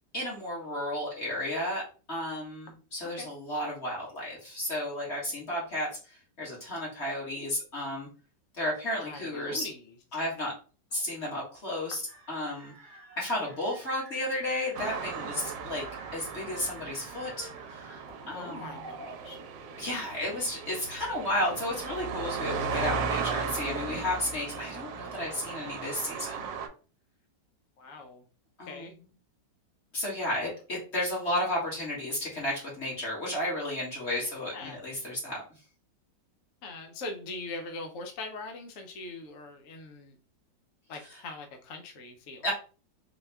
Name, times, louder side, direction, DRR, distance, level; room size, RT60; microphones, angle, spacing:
voice 1, 0.1-8.1 8.6-9.7 10.1-10.5 10.9-12.0 12.3-12.7 13.2-15.8 16.1-18.8 19.8-26.5 28.6-29.0 29.9-35.4 42.4-42.5, left 1 dB, 40° left, -5 dB, 1.5 m, -33 dB
voice 2, 9.0-9.9 10.9-11.0 18.3-19.4 25.2-25.4 27.8-28.2 28.6-28.9 34.3-34.8 36.6-40.2 40.9-42.5, left 3 dB, 70° left, 4 dB, 0.8 m, -42 dB
sound 1, 12.1-20.4, right 2 dB, 35° right, 0.9 m, -49 dB
sound 2, 14.7-26.7, right 5 dB, 85° right, 1.3 m, -36 dB
4.2 x 2.2 x 3.3 m, 0.37 s
omnidirectional pair, 1.9 m